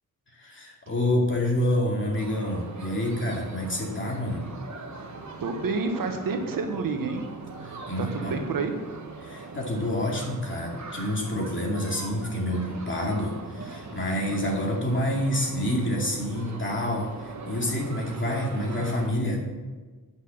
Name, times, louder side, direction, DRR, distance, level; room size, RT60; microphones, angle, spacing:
voice 1, 0.3-4.5 7.6-8.4 9.2-17.1 17.5-19.4, left 1 dB, 35° left, -1 dB, 2.4 m, -28 dB
sound 1, 2.2-19.1, right 3 dB, 55° right, 1.4 m, -41 dB
voice 2, 5.1-7.2 8.0-8.7, right 4 dB, 80° right, 5 dB, 1.3 m, -29 dB
9.8 x 5.8 x 7.2 m, 1.3 s
wide cardioid pair, 120°, 33 cm